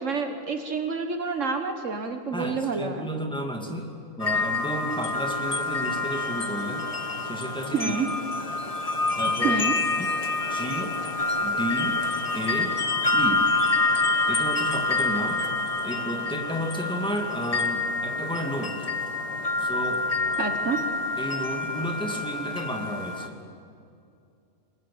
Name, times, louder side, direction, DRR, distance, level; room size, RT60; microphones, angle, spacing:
voice 1, 0.0-3.1 7.7-8.1 9.4-9.7 20.4-20.8, right 4 dB, 65° right, 7 dB, 1.7 m, -28 dB
voice 2, 2.3-6.9 7.2-8.0 9.2-9.7 10.0-10.1 10.5-11.0 11.4-12.0 12.3-12.8 13.1-13.5 14.3-15.5 15.8-18.9 19.6-20.1 21.2-23.4, right 1 dB, 5° left, 2 dB, 2.5 m, -32 dB
sound 1, 4.2-23.3, left 3 dB, 30° left, 1.2 m, -27 dB
27.0 x 22.0 x 8.7 m, 2.5 s
omnidirectional pair, 1.4 m